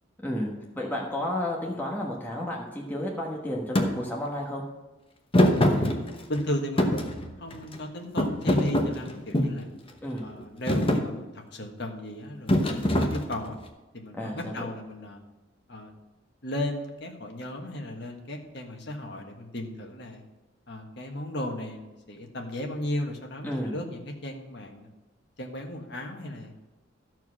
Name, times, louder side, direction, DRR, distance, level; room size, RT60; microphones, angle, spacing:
voice 1, 0.2-4.6 10.0-10.3 14.2-14.5 23.4-23.8, left 1 dB, 10° left, -2 dB, 1.3 m, -32 dB
Thump thud, 3.8-3.9 5.3-6.4 6.8-7.8 8.2-9.6 10.2-10.4 10.7-11.1 12.5-13.6, left 1 dB, 25° left, 0.9 m, -23 dB
voice 2, 5.7-9.7 10.2-13.6 13.9-15.2 15.7-15.9 16.4-20.2 20.7-24.9 25.4-26.5, left 1 dB, 55° left, 2 dB, 1.5 m, -35 dB
13.0 x 4.7 x 6.3 m, 1.1 s
head